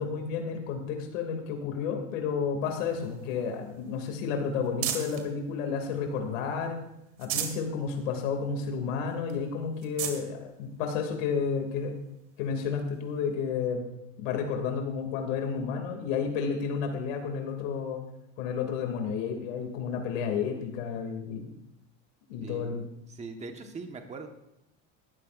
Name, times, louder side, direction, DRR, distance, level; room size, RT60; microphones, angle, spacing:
voice 1, 0.0-6.8 7.2-11.9 12.4-13.8 14.2-18.0 18.4-21.5 22.3-22.9, left 6 dB, 85° left, 3 dB, 2.7 m, -31 dB
sound 1, 2.6-5.3 5.8-6.6 7.0-7.7 8.1-8.2 8.6-8.7 9.3-9.4 9.8-10.2 11.1-11.2 12.9-13.0, right 10 dB, 85° right, 2.3 m, -36 dB
voice 2, 22.4-24.3, right 4 dB, 20° right, 4 dB, 1.3 m, -42 dB
19.0 x 14.0 x 2.6 m, 0.82 s
cardioid pair, 155°, 38 cm